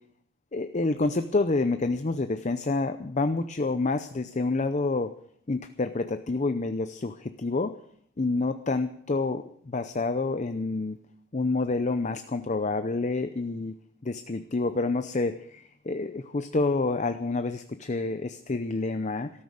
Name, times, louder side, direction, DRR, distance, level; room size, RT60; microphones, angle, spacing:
voice 1, 0.5-5.1 5.5-7.8 8.2-11.0 11.3-13.7 14.0-19.3, left 3 dB, 35° left, 10 dB, 0.6 m, -28 dB
13.5 x 13.0 x 6.5 m, 0.66 s
head